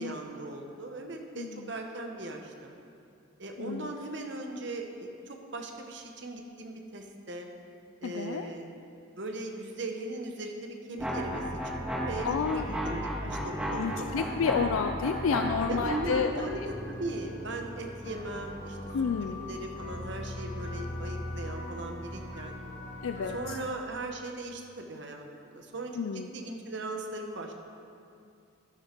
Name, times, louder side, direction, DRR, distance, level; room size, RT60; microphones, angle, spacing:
voice 1, 0.0-2.8 3.4-7.5 8.0-8.7 9.2-14.3 15.7-18.8 19.2-22.6 23.3-27.5, right 2 dB, 60° right, 3 dB, 1.1 m, -39 dB
voice 2, 1.4-1.7 3.6-3.9 8.0-8.5 12.2-12.7 13.7-16.5 18.9-19.4 23.0-23.6 25.9-26.3, left 6 dB, 80° left, 7 dB, 0.4 m, -30 dB
sound 1, 11.0-16.1, equal, 5° right, 1.8 m, -33 dB
sound 2, 16.2-23.6, left 1 dB, 35° left, 1.5 m, -40 dB
11.0 x 10.5 x 4.5 m, 2.5 s
head